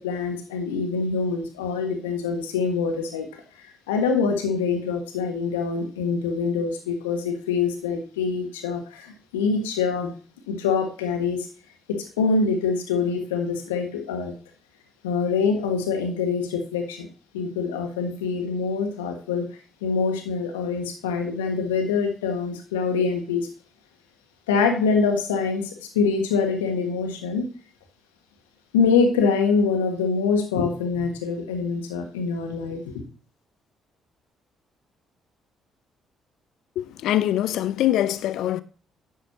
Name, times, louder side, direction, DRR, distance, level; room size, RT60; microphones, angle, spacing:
voice 1, 0.0-3.3 3.6-10.1 10.5-11.5 11.9-14.3 15.0-17.1 17.3-19.5 19.8-23.5 24.5-27.5 28.7-32.8, left 5 dB, 80° left, 1.4 m, -25 dB
voice 2, 36.8-38.6, left 13 dB, 65° left, 0.5 m, -23 dB
10.5 x 6.5 x 2.8 m
hypercardioid pair, 45°, 0 cm